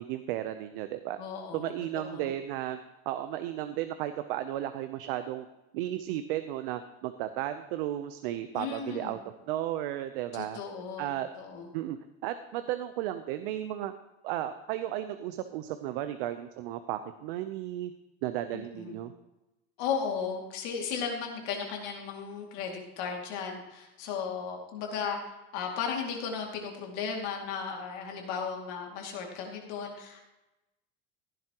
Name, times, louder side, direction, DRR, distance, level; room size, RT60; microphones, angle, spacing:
voice 1, 0.0-1.2 1.5-2.8 3.1-5.5 5.7-9.2 9.5-10.6 11.0-11.3 11.7-12.0 12.2-13.9 14.2-17.9 18.2-19.1, right 13 dB, 65° right, 10 dB, 0.7 m, -34 dB
voice 2, 1.2-2.3 8.5-9.2 10.3-11.1 11.4-11.7 18.5-19.0 19.8-25.2 25.5-30.3, left 6 dB, 55° left, 1 dB, 2.3 m, -35 dB
15.0 x 11.0 x 3.0 m, 0.99 s
cardioid pair, 180°, 30 cm